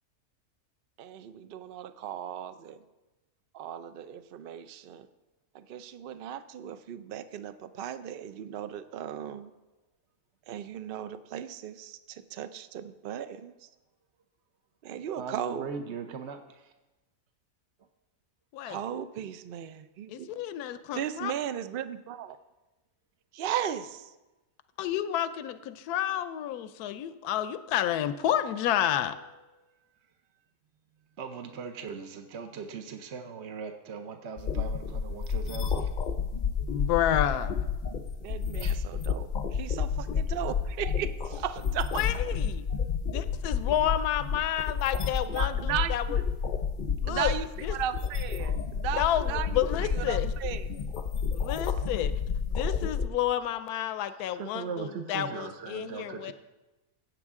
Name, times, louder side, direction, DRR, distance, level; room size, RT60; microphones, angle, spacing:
voice 1, 1.0-2.8 3.5-5.1 5.5-9.5 10.5-13.7 14.8-15.9 18.6-20.3 20.9-22.4 23.3-24.1 38.2-42.0 45.3-45.9 47.1-50.9, right 10 dB, 80° right, 11 dB, 0.5 m, -36 dB
voice 2, 15.2-16.7 28.9-29.1 31.2-35.9 38.6-38.8 47.1-47.2 54.3-56.3, right 6 dB, 55° right, 6 dB, 0.9 m, -39 dB
voice 3, 20.1-21.3 24.8-29.1 36.7-37.6 41.9-42.6 43.0-46.0 47.0-47.3 47.6-47.8 49.0-50.3 51.3-52.1 52.5-56.3, left 11 dB, 85° left, 12 dB, 1.1 m, -30 dB
sound 1, 34.4-53.1, left 6 dB, 50° left, 0.6 m, -30 dB
16.0 x 8.3 x 3.6 m, 1.1 s
omnidirectional pair, 1.6 m